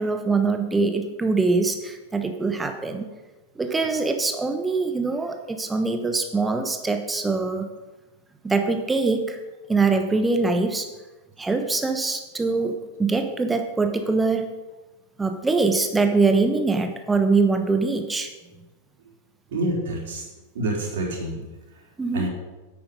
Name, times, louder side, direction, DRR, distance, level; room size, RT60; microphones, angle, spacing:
voice 1, 0.0-3.1 3.6-7.7 8.4-9.4 9.7-10.9 11.4-14.5 15.2-18.3 22.0-22.3, right 3 dB, 10° right, 6 dB, 1.1 m, -23 dB
voice 2, 19.5-20.2 20.5-21.4 22.1-22.3, right 1 dB, 60° right, -2 dB, 3.9 m, -27 dB
10.0 x 8.6 x 5.3 m, 1.2 s
figure-of-eight pair, 90°, 0 cm